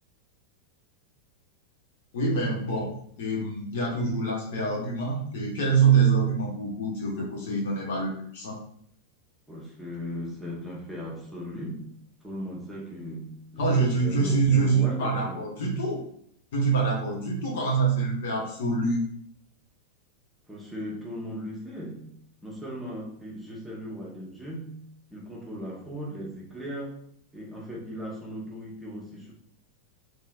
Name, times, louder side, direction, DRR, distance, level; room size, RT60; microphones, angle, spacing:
voice 1, 2.1-2.9 3.2-8.6 13.6-16.0 16.5-19.0, right 4 dB, 55° left, -2 dB, 1.0 m, -25 dB
voice 2, 9.5-11.9 12.2-15.4 20.5-24.8 25.1-27.0 27.3-29.3, equal, 5° right, -4 dB, 1.0 m, -38 dB
3.0 x 2.8 x 2.4 m, 0.67 s
figure-of-eight pair, 90°, 0 cm